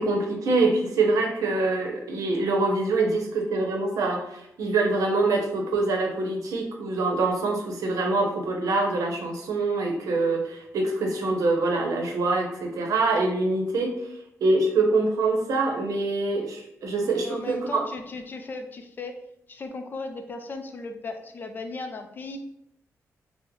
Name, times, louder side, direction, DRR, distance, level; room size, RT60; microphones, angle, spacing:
voice 1, 0.0-14.1 14.4-17.8, right 3 dB, 85° right, 2 dB, 0.6 m, -25 dB
voice 2, 17.0-19.1 19.5-22.4, left 3 dB, 35° left, 6 dB, 0.3 m, -36 dB
3.6 x 2.0 x 3.0 m, 0.77 s
wide cardioid pair, 145°, 6 cm